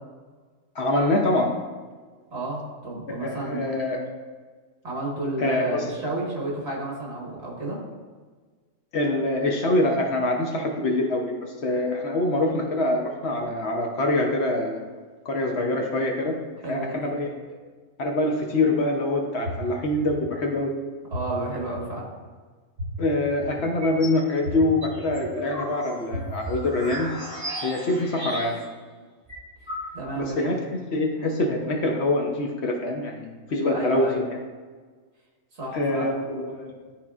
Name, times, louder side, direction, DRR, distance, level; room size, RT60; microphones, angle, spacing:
voice 1, 0.7-1.5 3.1-4.0 5.4-5.8 8.9-14.8 15.2-16.3 16.7-17.6 18.0-20.7 23.0-27.1 27.6-28.6 30.2-30.6 30.9-34.2 35.7-36.8, left 2 dB, 60° left, 1 dB, 1.0 m, -25 dB
voice 2, 2.3-3.7 4.8-7.8 16.6-17.1 21.1-22.1 29.9-30.5 33.7-34.2 35.6-36.1, right 2 dB, 50° right, -3 dB, 1.8 m, -31 dB
sound 1, 19.4-19.5 20.1-20.2 21.1-21.2 21.8-21.9 22.8-22.9 23.4-23.5 24.4-24.5 25.1-25.2 26.1-26.2 26.8-26.9, left 2 dB, 70° right, 1.3 m, -32 dB
sound 2, 23.6-24.2 24.6-28.8 29.0-29.1 29.3-30.3, right 1 dB, 30° right, 1.3 m, -35 dB
11.5 x 4.2 x 2.4 m, 1.4 s
omnidirectional pair, 1.4 m